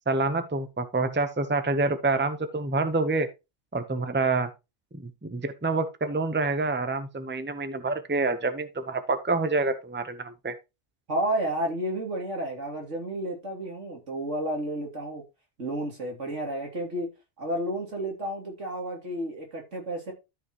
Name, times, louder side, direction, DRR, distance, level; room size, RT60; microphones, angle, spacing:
voice 1, 0.1-3.3 3.7-4.5 5.0-10.5, right 3 dB, 10° right, 0.8 m, -27 dB
voice 2, 11.1-15.2 15.6-17.1 17.4-20.1, right 1 dB, 90° right, 3.4 m, -31 dB
13.0 x 5.7 x 3.0 m
omnidirectional pair, 1.2 m